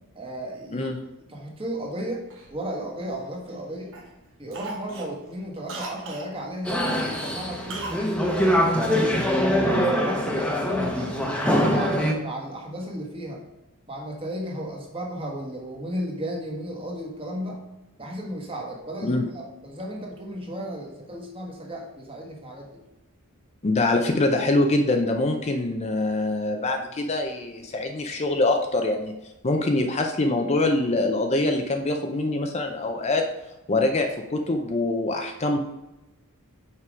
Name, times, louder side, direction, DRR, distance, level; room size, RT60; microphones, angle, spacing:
voice 1, 0.1-0.9 1.3-2.2 2.5-3.9 4.4-11.3 11.7-13.4 13.9-17.6 18.0-22.8, equal, 25° right, 0 dB, 1.4 m, -34 dB
Cough, 2.3-3.6 3.9-4.2 4.5-6.3 7.7-8.1 8.3-8.4, right 3 dB, 60° right, 1.1 m, -38 dB
sound 1, 6.6-12.1, equal, 5° left, 0.9 m, -23 dB
voice 2, 23.6-29.2 29.4-33.3 33.7-35.6, left 2 dB, 30° left, 4 dB, 0.5 m, -24 dB
5.8 x 4.7 x 4.9 m, 0.98 s
head